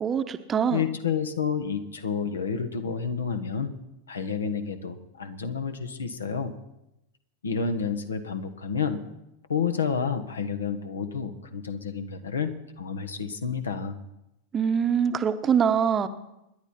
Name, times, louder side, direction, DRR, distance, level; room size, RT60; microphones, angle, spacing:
voice 1, 0.0-0.8 14.5-16.1, right 7 dB, 25° right, 10 dB, 0.9 m, -24 dB
voice 2, 0.7-3.7 4.1-6.5 7.4-9.0 9.5-12.5 12.8-14.0, left 6 dB, 70° left, 9 dB, 1.3 m, -30 dB
27.0 x 11.0 x 4.3 m, 0.90 s
figure-of-eight pair, 90°, 0 cm